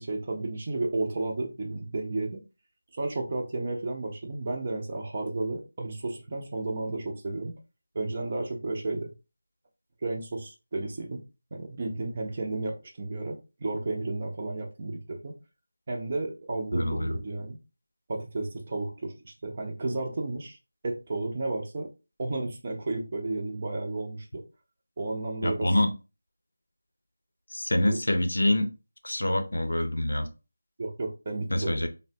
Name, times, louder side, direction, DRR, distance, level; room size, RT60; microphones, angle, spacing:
voice 1, 0.0-2.4 3.0-7.5 7.9-9.1 10.0-11.2 11.5-15.4 15.9-17.6 18.1-20.6 20.8-21.9 22.2-24.4 25.0-25.7 27.8-28.0 30.8-31.9, right 2 dB, 35° right, 2 dB, 0.6 m, -32 dB
voice 2, 16.7-17.2 25.4-25.9 27.5-28.7 29.0-30.3 31.5-31.9, left 1 dB, 75° left, 7 dB, 0.6 m, -26 dB
3.4 x 2.1 x 2.7 m, 0.29 s
figure-of-eight pair, 170°, 0 cm